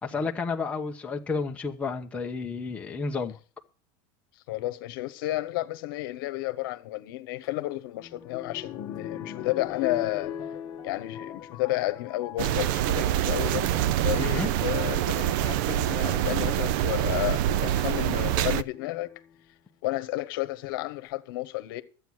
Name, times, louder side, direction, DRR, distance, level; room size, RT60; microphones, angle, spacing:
voice 1, 0.0-3.4 14.2-14.5, left 4 dB, 10° left, 1.0 m, -31 dB
voice 2, 4.5-10.3 10.8-19.1 19.8-21.8, left 17 dB, 70° left, 1.2 m, -32 dB
sound 1, 7.4-13.1 13.8-14.3 15.5-15.6 16.3-16.6 18.7-19.4 20.0-20.1 20.3-20.4, left 9 dB, 35° left, 1.2 m, -40 dB
sound 2, 12.4-18.6, right 12 dB, 55° right, 0.5 m, -25 dB
12.5 x 8.4 x 6.3 m
supercardioid pair, 160°, 12 cm